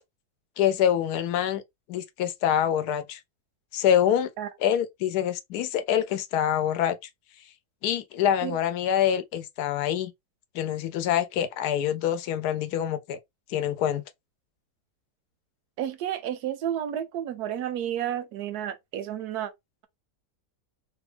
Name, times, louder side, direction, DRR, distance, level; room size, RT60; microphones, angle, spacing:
voice 1, 0.6-1.6 1.9-3.2 3.7-4.3 4.6-7.0 7.8-10.1 10.5-13.2 13.5-14.0, left 10 dB, 85° left, 1.1 m, -25 dB
voice 2, 15.8-19.5, right 10 dB, 85° right, 1.1 m, -31 dB
2.9 x 2.3 x 3.2 m
omnidirectional pair, 1.6 m